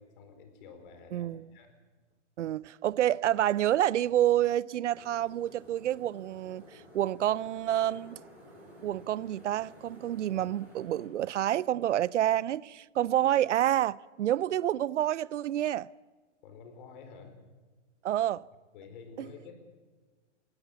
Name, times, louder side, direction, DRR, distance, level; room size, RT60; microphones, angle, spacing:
voice 1, 0.0-1.7 16.4-17.4 18.7-19.6, left 5 dB, 45° left, 4.4 m, -50 dB
voice 2, 1.1-1.5 2.4-8.2 8.8-15.9 18.0-18.4 19.2-19.3, right 12 dB, 80° right, 0.6 m, -28 dB
sound 1, 4.9-11.1, equal, 5° right, 7.4 m, -53 dB
21.0 x 17.0 x 8.3 m
hypercardioid pair, 150°, 36 cm